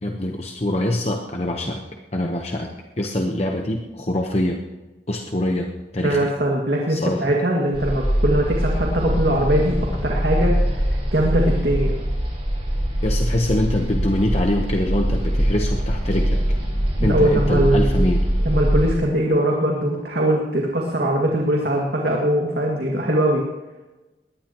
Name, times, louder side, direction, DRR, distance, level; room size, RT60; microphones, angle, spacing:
voice 1, 0.0-1.8 2.1-2.7 3.0-4.6 5.1-6.3 6.9-7.2 13.0-16.4 17.0-18.3, left 1 dB, 35° left, 2 dB, 1.0 m, -24 dB
voice 2, 6.0-11.9 17.0-18.1 18.4-23.4, right 1 dB, 65° right, -1 dB, 2.2 m, -21 dB
sound 1, 7.7-18.9, equal, 35° right, 5.4 m, -22 dB
21.5 x 18.0 x 3.0 m, 1.1 s
head